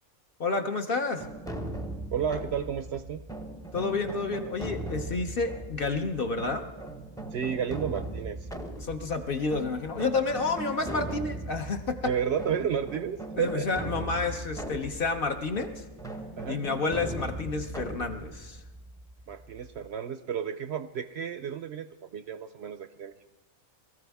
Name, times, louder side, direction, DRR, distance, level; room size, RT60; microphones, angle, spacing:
voice 1, 0.4-1.2 3.7-6.6 8.8-12.1 13.4-15.8 16.5-18.6, left 4 dB, 50° left, 6 dB, 0.8 m, -30 dB
sound 1, 1.2-19.9, right 2 dB, 5° left, 0.5 m, -39 dB
voice 2, 2.1-3.2 7.3-8.5 12.0-13.7 16.4-16.6 19.3-21.9 22.1-23.1, right 7 dB, 60° right, 10 dB, 0.7 m, -32 dB
22.0 x 14.0 x 3.5 m, 1.1 s
omnidirectional pair, 1.5 m